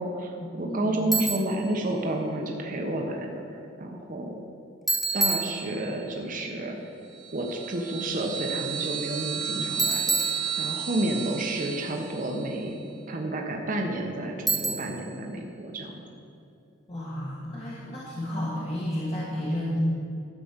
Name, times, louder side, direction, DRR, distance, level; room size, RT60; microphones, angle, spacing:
voice 1, 0.0-3.4 3.8-4.4 5.1-6.8 7.3-10.2 10.6-12.8 13.1-16.0, right 1 dB, 45° right, 1 dB, 1.0 m, -30 dB
voice 2, 0.6-1.0 16.9-19.8, left 1 dB, 30° left, -7 dB, 1.6 m, -32 dB
Bicycle, 1.1-1.6 4.9-6.1 9.8-11.0 14.5-15.1, right 3 dB, ahead, 0.9 m, -28 dB
sound 1, 7.1-12.6, right 8 dB, 65° right, 1.5 m, -33 dB
12.5 x 5.0 x 7.4 m, 2.6 s
head